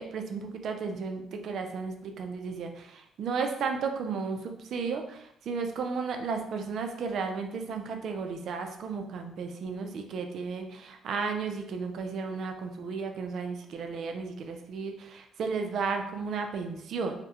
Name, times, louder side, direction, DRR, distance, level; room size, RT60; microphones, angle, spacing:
voice 1, 0.0-17.1, right 5 dB, 65° right, 4 dB, 0.3 m, -34 dB
2.3 x 2.1 x 2.8 m, 0.79 s
cardioid pair, 105°, 0 cm